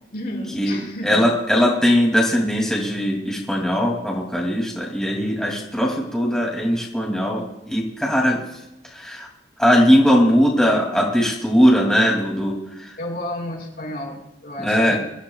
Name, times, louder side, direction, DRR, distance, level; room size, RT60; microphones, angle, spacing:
voice 1, 0.1-1.2 13.0-15.0, left 1 dB, 60° left, -1 dB, 5.4 m, -31 dB
voice 2, 1.0-8.4 8.9-9.3 9.6-13.0 14.6-15.0, equal, 5° left, -3 dB, 2.8 m, -19 dB
24.5 x 14.0 x 2.4 m, 0.90 s
head